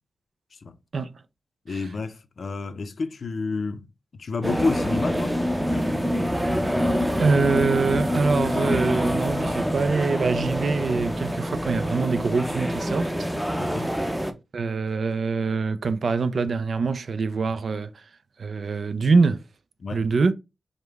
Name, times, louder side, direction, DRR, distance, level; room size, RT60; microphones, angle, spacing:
voice 1, 1.7-3.9 4.1-5.5 13.6-13.9 19.8-20.0, left 4 dB, 65° left, 0.5 m, -30 dB
sound 1, 4.4-14.3, equal, 5° right, 0.6 m, -26 dB
voice 2, 7.2-13.3 14.5-18.1 18.4-19.4 19.9-20.3, right 4 dB, 70° right, 0.4 m, -24 dB
5.0 x 2.1 x 3.4 m
wide cardioid pair, 95°, 0 cm